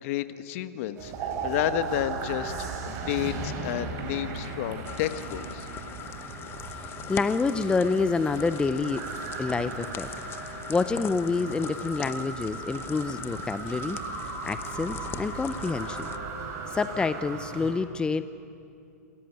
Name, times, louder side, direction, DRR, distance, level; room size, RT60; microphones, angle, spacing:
voice 1, 0.0-5.7, left 13 dB, 55° left, 11 dB, 1.2 m, -31 dB
sound 1, 1.0-17.7, right 5 dB, 40° right, 4.9 m, -37 dB
sound 2, 1.3-16.8, right 5 dB, 60° right, 3.8 m, -46 dB
sound 3, 4.9-16.2, left 9 dB, 25° left, 0.9 m, -41 dB
voice 2, 7.1-9.0 9.4-10.1 10.4-14.0 14.4-16.1 16.7-18.2, left 4 dB, 10° left, 12 dB, 0.6 m, -27 dB
28.0 x 14.0 x 9.2 m, 2.5 s
hypercardioid pair, 125°, 9 cm